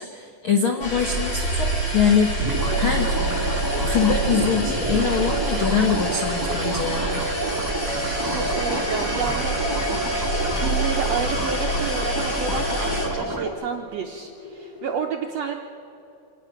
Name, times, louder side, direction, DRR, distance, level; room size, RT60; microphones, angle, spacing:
voice 1, 0.0-3.2 3.8-7.2, left 7 dB, 70° left, 3 dB, 1.2 m, -23 dB
sound 1, 0.7-14.9, left 4 dB, 50° left, 4.4 m, -43 dB
sound 2, 0.8-13.1, right 1 dB, 35° left, 4.0 m, -27 dB
sound 3, 2.4-13.5, right 2 dB, 30° right, 0.3 m, -28 dB
voice 2, 8.3-10.0 10.5-15.6, right 6 dB, 75° right, 2 dB, 1.5 m, -30 dB
26.0 x 18.0 x 5.8 m, 2.7 s
omnidirectional pair, 4.0 m